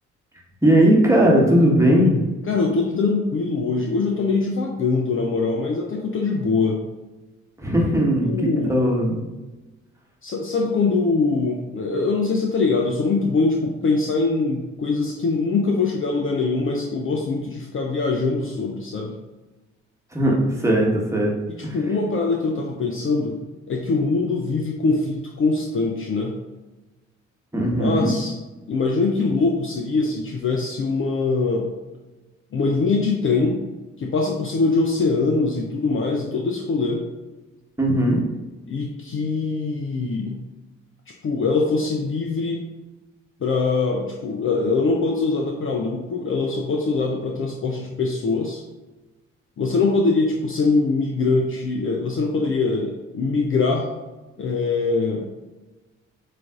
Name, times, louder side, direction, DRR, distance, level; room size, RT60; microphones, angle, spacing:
voice 1, 0.6-2.2 7.6-9.2 20.1-21.3 21.6-21.8 27.5-28.1 37.8-38.2, equal, 10° right, -2 dB, 1.2 m, -18 dB
voice 2, 2.4-6.8 8.2-8.7 10.2-19.2 21.7-23.4 23.7-26.3 27.7-28.4 28.7-31.7 32.5-33.6 34.0-37.1 38.7-40.4 41.1-42.7 43.4-48.6 49.6-53.9 54.4-55.2, left 3 dB, 35° left, 1 dB, 0.6 m, -23 dB
7.4 x 2.6 x 2.4 m, 1.1 s
hypercardioid pair, 45°, 36 cm